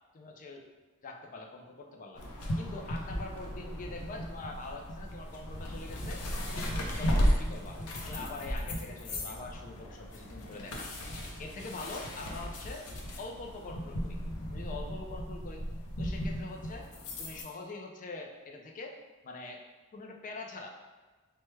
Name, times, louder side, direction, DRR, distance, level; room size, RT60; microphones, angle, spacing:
voice 1, 0.1-0.7 1.0-2.2 2.6-6.2 6.6-7.8 8.1-10.9 11.4-12.9 13.2-14.2 14.5-15.6 16.0-16.9 17.2-19.0 19.2-19.6 19.9-20.7, left 3 dB, 35° left, 2 dB, 0.4 m, -44 dB
sound 1, 2.2-17.4, equal, 85° left, 0.5 m, -35 dB
3.2 x 2.2 x 3.1 m, 1.3 s
head